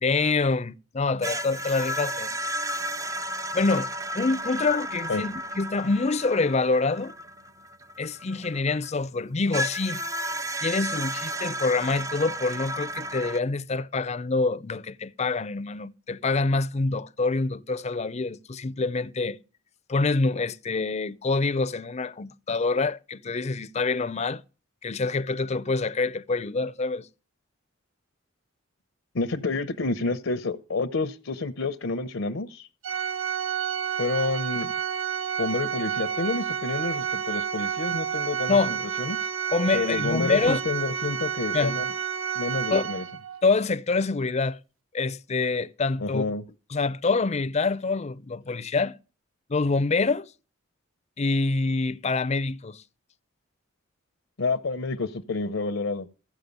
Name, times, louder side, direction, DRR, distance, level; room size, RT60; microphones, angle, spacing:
voice 1, 0.0-2.3 3.5-3.9 4.1-7.1 8.0-10.0 10.6-19.4 19.9-24.4 24.8-27.1 38.5-38.8 39.5-40.6 41.5-41.8 42.7-42.8 43.4-44.6 44.9-46.2 46.7-49.0 49.5-50.3 51.2-52.8, left 3 dB, 35° left, 0.5 m, -26 dB
sound 1, 1.2-8.9 9.5-13.4, equal, 15° right, 0.5 m, -33 dB
voice 2, 29.1-32.7 34.0-34.7 35.4-39.2 39.7-41.9 42.3-43.0 46.0-46.5 54.4-56.1, left 3 dB, 75° left, 0.8 m, -29 dB
Organ, 32.8-43.4, right 8 dB, 75° right, 1.0 m, -30 dB
14.5 x 7.5 x 5.3 m
head